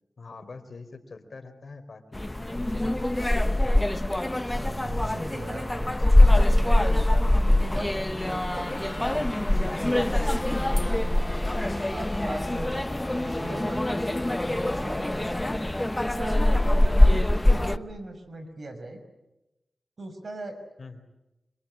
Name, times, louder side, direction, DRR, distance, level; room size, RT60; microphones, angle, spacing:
voice 1, 0.2-2.0 2.5-3.0 20.8-21.0, left 4 dB, 65° left, 8 dB, 4.1 m, -43 dB
sound 1, 2.1-17.8, left 1 dB, 20° left, 1.2 m, -23 dB
voice 2, 4.3-9.3 9.8-12.7 13.2-15.3 16.0-19.0 20.0-20.6, right 2 dB, 60° right, 7 dB, 6.0 m, -40 dB
27.0 x 24.0 x 8.8 m, 0.95 s
cardioid pair, 50°, 0 cm